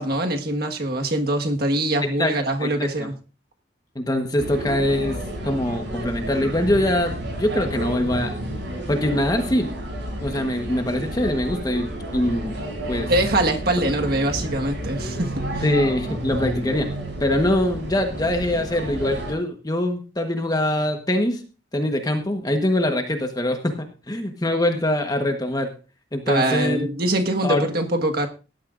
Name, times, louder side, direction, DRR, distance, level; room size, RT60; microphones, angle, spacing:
voice 1, 0.0-3.1 13.1-15.6 26.3-28.3, right 1 dB, 55° right, 4 dB, 1.6 m, -23 dB
voice 2, 2.0-2.3 2.6-3.1 3.9-5.2 5.4-8.3 8.9-9.7 10.2-12.5 12.9-13.1 15.6-16.9 17.2-21.4 21.7-25.7 26.1-26.8 27.4-27.7, left 1 dB, 20° left, 5 dB, 1.2 m, -23 dB
sound 1, 4.4-19.3, right 1 dB, 75° right, 7.0 m, -31 dB
18.0 x 12.0 x 2.5 m, 0.33 s
head